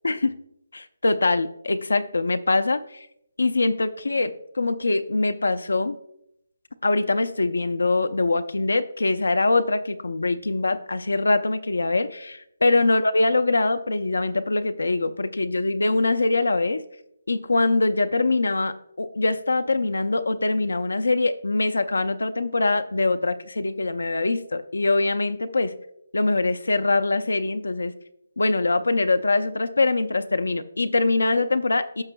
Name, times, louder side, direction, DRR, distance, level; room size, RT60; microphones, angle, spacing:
voice 1, 0.7-3.1 3.4-6.0 6.8-16.8 17.3-25.7 26.1-27.9 28.4-32.0, left 3 dB, 85° left, 10 dB, 0.5 m, -23 dB
15.0 x 6.0 x 2.2 m, 0.77 s
hypercardioid pair, 165°, 0 cm